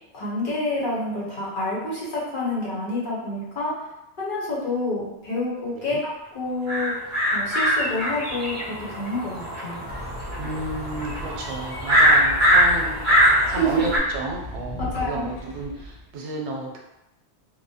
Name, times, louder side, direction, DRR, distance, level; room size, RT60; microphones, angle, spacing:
voice 1, 0.1-3.7 4.2-6.9 7.3-9.8 13.6-13.9 14.9-15.3, left 1 dB, 50° left, -6 dB, 0.9 m, -28 dB
sound 1, 6.7-14.0, equal, 40° right, 0.9 m, -22 dB
sound 2, 9.9-16.1, equal, 85° left, 0.9 m, -37 dB
voice 2, 10.4-16.8, right 2 dB, 85° right, 0 dB, 0.9 m, -32 dB
3.2 x 2.1 x 2.7 m, 0.90 s
omnidirectional pair, 1.1 m